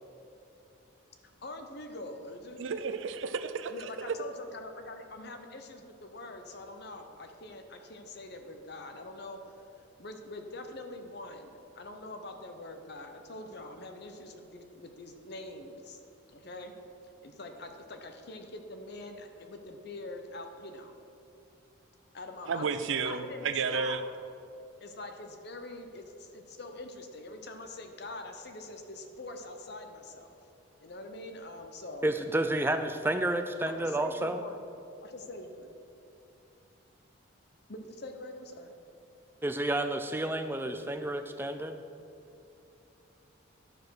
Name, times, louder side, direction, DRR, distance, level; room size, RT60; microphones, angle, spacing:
voice 1, 1.4-2.6 3.7-9.5 10.0-16.0 16.3-16.7 17.2-20.9 22.1-22.6 23.0-24.0 24.8-30.4 30.8-32.1 33.8-34.6 35.0-35.7 37.7-38.8, left 2 dB, 50° left, 5 dB, 0.8 m, -44 dB
voice 2, 2.6-4.1 22.5-24.0, right 5 dB, 65° right, 11 dB, 0.5 m, -32 dB
voice 3, 32.0-34.4 39.4-41.8, right 1 dB, 10° right, 7 dB, 0.4 m, -30 dB
10.5 x 5.0 x 6.3 m, 2.7 s
head